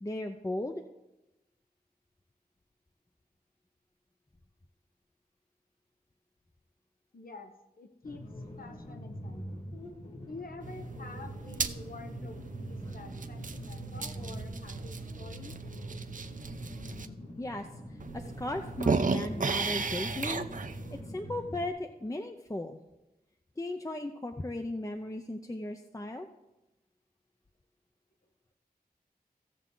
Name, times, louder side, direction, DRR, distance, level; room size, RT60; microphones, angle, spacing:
voice 1, 0.0-0.7 17.4-20.5 20.9-22.8 23.6-26.3, left 1 dB, 20° left, 5 dB, 0.6 m, -36 dB
voice 2, 7.1-8.2 8.6-9.7 10.3-15.5, left 3 dB, 65° left, 6 dB, 0.9 m, -48 dB
sound 1, 8.0-21.7, equal, 40° left, 2.0 m, -44 dB
sound 2, 10.6-17.1 17.6-17.7 18.0-21.0, right 4 dB, 55° right, 0.6 m, -35 dB
15.5 x 7.0 x 3.9 m, 0.98 s
wide cardioid pair, 75°, 16 cm